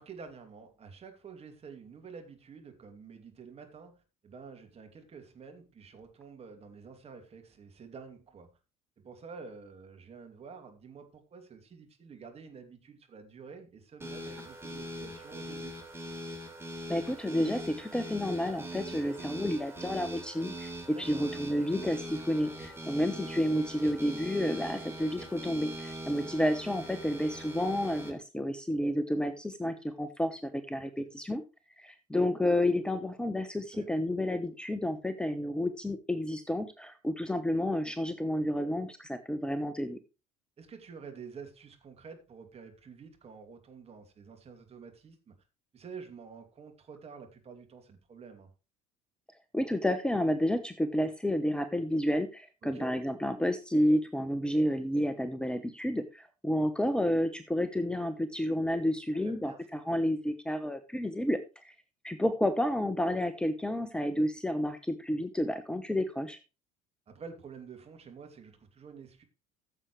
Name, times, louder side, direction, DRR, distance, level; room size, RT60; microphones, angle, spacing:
voice 1, 0.0-8.5 9.0-15.8 20.9-21.3 31.0-31.1 33.7-33.9 40.6-45.4 45.7-48.5 52.6-53.0 59.1-59.6 67.1-69.2, right 5 dB, 35° right, 5 dB, 2.7 m, -49 dB
sound 1, 14.0-28.1, right 1 dB, 15° right, 3.4 m, -42 dB
voice 2, 16.9-20.7 21.0-31.4 31.8-40.0 49.5-61.4 61.6-61.7 62.0-66.4, left 1 dB, 5° left, 11 dB, 1.0 m, -30 dB
14.5 x 7.4 x 3.2 m, 0.30 s
figure-of-eight pair, 60°, 18 cm